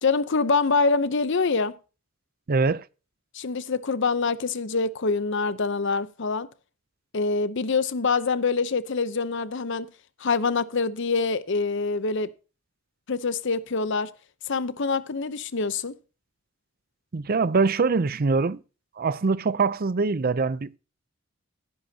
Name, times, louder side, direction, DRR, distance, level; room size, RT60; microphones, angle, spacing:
voice 1, 0.0-1.7 3.3-6.5 7.1-9.9 10.2-12.3 13.1-14.1 14.5-16.0, left 4 dB, 60° left, 0.8 m, -25 dB
voice 2, 2.5-2.9 17.1-18.6 19.0-20.8, right 4 dB, 45° right, 0.5 m, -23 dB
16.0 x 10.5 x 2.8 m
head